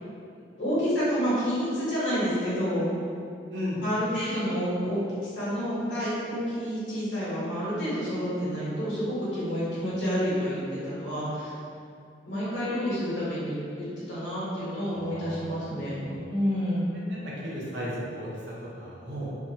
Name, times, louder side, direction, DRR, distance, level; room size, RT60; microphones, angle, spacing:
voice 1, 0.6-2.9 3.8-11.5 12.2-16.0 16.3-16.9, equal, 75° left, -10 dB, 1.1 m, -29 dB
voice 2, 3.5-3.8 14.9-16.2 17.1-19.3, equal, 70° right, -6 dB, 0.7 m, -36 dB
2.6 x 2.5 x 2.7 m, 2.4 s
head